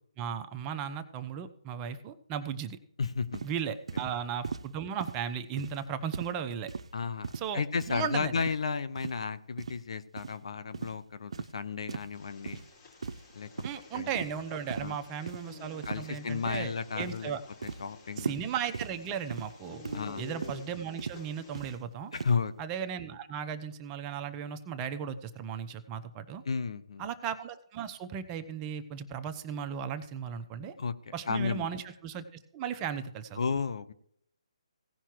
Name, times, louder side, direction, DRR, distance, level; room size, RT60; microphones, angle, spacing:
voice 1, 0.2-2.8 3.4-6.7 7.3-8.4 13.6-17.4 18.2-22.1 22.6-26.4 27.0-30.7 31.1-32.2 32.5-33.4, right 7 dB, 20° right, 8 dB, 0.7 m, -36 dB
voice 2, 3.0-3.4 6.9-12.6 13.3-13.5 13.9-14.1 14.8-15.0 15.9-17.3 17.6-18.4 19.9-20.2 22.1-22.5 26.4-27.0 30.8-31.7 33.4-33.9, left 5 dB, 65° left, 13 dB, 0.9 m, -33 dB
sound 1, 3.3-3.5 3.9-4.1 4.4-4.7 5.0-5.2 5.6-5.9 6.1-6.3 6.7-6.9 7.2-7.5 7.8-8.0 8.4-8.6 9.0-9.2 9.6-9.8 10.2-10.3 10.7-11.0 11.3-11.5 11.9-12.1 12.5-12.7 13.0-13.3 13.6-13.8 14.2-14.4 14.7-14.9 15.3-15.4 15.8-16.1 16.5-16.8 17.0-17.2 17.6-17.8 18.2-18.4 18.7-18.9 19.3-19.5 19.9-20.1 20.4-20.6 21.0-21.2 21.5-21.7 22.1-22.4, right 5 dB, 70° right, 0.6 m, -38 dB
sound 2, 12.1-21.8, left 4 dB, 30° left, 4.5 m, -51 dB
17.0 x 5.7 x 4.6 m, 0.66 s
hypercardioid pair, 155°, 3 cm